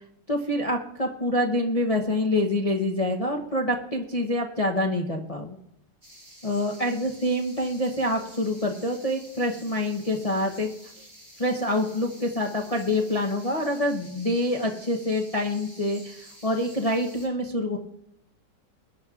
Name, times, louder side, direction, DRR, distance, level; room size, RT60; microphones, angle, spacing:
voice 1, 0.3-5.6 6.4-10.7 11.0-11.1 11.4-17.8, left 1 dB, 70° left, 0 dB, 0.3 m, -26 dB
sound 1, 6.0-17.3, right 1 dB, 20° right, 5.8 m, -50 dB
21.0 x 10.0 x 2.4 m, 0.80 s
omnidirectional pair, 2.0 m